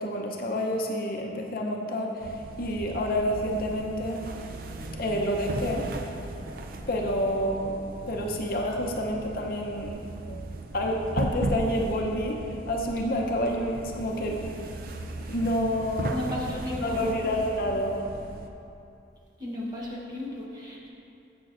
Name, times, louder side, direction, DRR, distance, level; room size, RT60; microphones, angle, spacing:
voice 1, 0.0-4.3 5.0-5.8 6.9-7.8 8.1-9.9 10.3-10.4 10.7-14.4 15.3-16.1 16.8-18.0, equal, 50° left, 0 dB, 0.7 m, -28 dB
sound 1, 2.2-18.5, right 2 dB, 50° right, 0.5 m, -37 dB
voice 2, 16.1-17.0 19.4-20.9, left 1 dB, 20° right, -4 dB, 1.1 m, -34 dB
10.0 x 7.8 x 2.5 m, 2.7 s
head